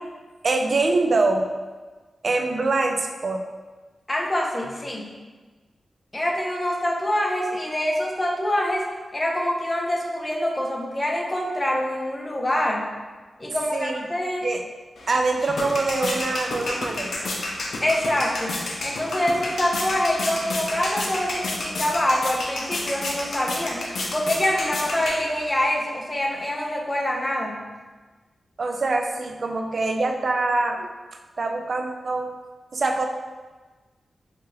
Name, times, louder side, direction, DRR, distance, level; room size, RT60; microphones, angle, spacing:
voice 1, 0.4-1.5 2.2-3.4 13.7-14.0 14.4-14.6 15.1-17.3 28.6-30.9 31.4-32.3 32.7-33.1, right 3 dB, 45° right, 3 dB, 0.3 m, -24 dB
voice 2, 4.1-5.2 6.1-12.9 13.4-14.5 17.8-27.7, left 1 dB, 20° left, 0 dB, 0.5 m, -25 dB
sound 1, 15.0-25.7, left 2 dB, 75° left, 0.6 m, -31 dB
4.6 x 2.4 x 2.9 m, 1.3 s
wide cardioid pair, 170°, 0 cm